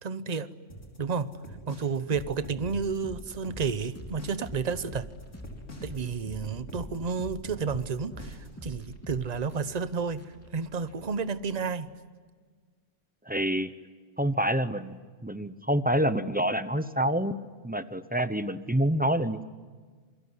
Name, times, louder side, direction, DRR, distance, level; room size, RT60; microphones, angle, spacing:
voice 1, 0.0-0.5 1.0-1.3 1.7-5.1 5.8-10.2 10.5-11.9, right 5 dB, 35° right, 0.9 m, -31 dB
sound 1, 0.7-8.6, equal, 85° left, 4.6 m, -46 dB
sound 2, 2.1-11.7, equal, 10° left, 3.2 m, -45 dB
voice 2, 13.3-13.7 14.2-17.4 17.6-19.4, right 1 dB, 10° right, 0.7 m, -27 dB
27.5 x 22.0 x 9.6 m
omnidirectional pair, 1.3 m